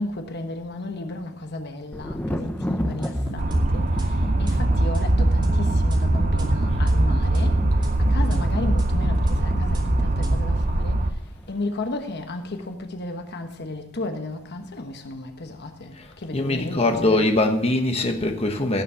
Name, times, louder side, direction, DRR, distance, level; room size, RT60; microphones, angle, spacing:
voice 1, 0.0-7.6 8.0-11.0 11.5-17.2, left 2 dB, 55° left, 1.2 m, -34 dB
Thunder, 1.9-11.6 11.8-12.6, equal, 10° left, 0.9 m, -36 dB
sound 1, 2.8-10.4, equal, 20° right, 2.6 m, -29 dB
sound 2, 3.4-11.1, right 1 dB, 40° right, 0.8 m, -22 dB
voice 2, 16.3-18.8, left 2 dB, 30° left, 1.2 m, -22 dB
17.0 x 7.3 x 5.6 m
head